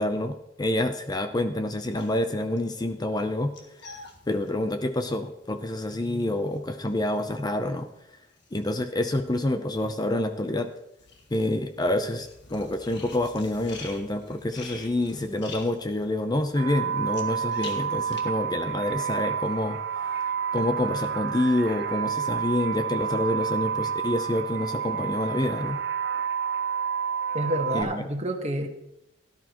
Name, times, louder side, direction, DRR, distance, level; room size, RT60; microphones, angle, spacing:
voice 1, 0.0-3.5 4.3-7.9 8.5-10.7 11.3-19.8 20.5-25.8 27.7-28.0, left 1 dB, 20° left, 8 dB, 0.6 m, -27 dB
sound 1, 1.9-9.4 9.7-18.2, left 4 dB, 65° left, 1.8 m, -47 dB
sound 2, 16.6-27.8, right 7 dB, 65° right, 1.0 m, -29 dB
voice 2, 27.3-28.7, right 1 dB, 35° right, 4 dB, 1.4 m, -28 dB
17.0 x 11.0 x 3.0 m, 0.83 s
head